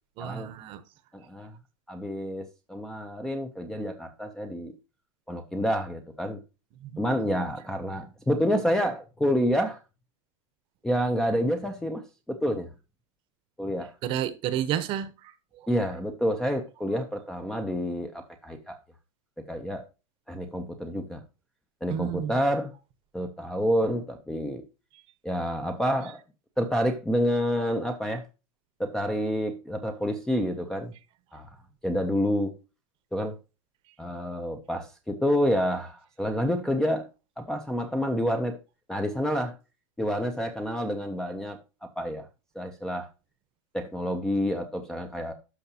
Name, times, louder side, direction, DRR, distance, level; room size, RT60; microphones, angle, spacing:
voice 1, 0.2-0.8 6.9-7.0 14.0-15.1 21.9-22.3, right 10 dB, 30° right, 0.9 m, -30 dB
voice 2, 1.1-1.6 1.9-4.7 5.3-6.4 7.0-9.8 10.8-12.7 13.6-13.9 15.7-18.8 19.5-19.8 20.3-21.2 21.8-22.7 23.1-24.6 25.2-26.2 26.6-28.2 28.8-30.9 31.3-31.6 31.8-32.6 33.1-33.4 34.0-37.1 37.4-38.6 38.9-39.6 40.0-42.3 42.6-43.1 43.7-45.3, equal, 5° left, 0.5 m, -28 dB
12.5 x 5.6 x 2.8 m
supercardioid pair, 165°, 17 cm